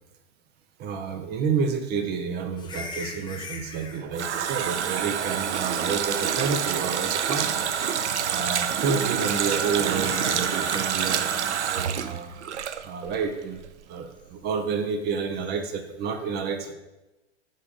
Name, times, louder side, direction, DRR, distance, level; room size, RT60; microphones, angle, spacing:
voice 1, 0.8-7.7 8.3-12.3 12.8-13.6 13.9-16.7, right 5 dB, 30° right, 7 dB, 0.8 m, -29 dB
sound 1, 2.6-4.0 5.7-6.2 6.5-6.6 7.3-7.8 9.2-9.3 9.8-11.3 15.4-15.6, left 4 dB, 15° left, 0.7 m, -41 dB
Water tap faucet, 3.7-13.3 13.6-13.7, right 8 dB, 75° right, 0.6 m, -27 dB
9.8 x 3.6 x 5.2 m, 1.0 s
figure-of-eight pair, 105°, 34 cm